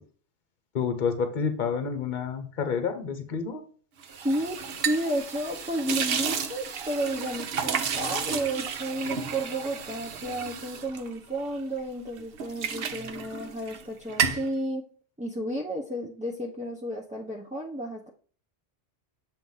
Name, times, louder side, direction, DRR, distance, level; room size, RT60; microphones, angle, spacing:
voice 1, 0.7-3.6, left 6 dB, 45° left, 8 dB, 1.0 m, -29 dB
sound 1, 4.0-11.8 12.2-13.8 14.1-14.5, right 7 dB, 60° right, 0.9 m, -32 dB
voice 2, 4.2-14.9 15.2-18.1, right 1 dB, 10° right, -3 dB, 0.5 m, -32 dB
7.6 x 2.6 x 5.4 m, 0.43 s
omnidirectional pair, 1.2 m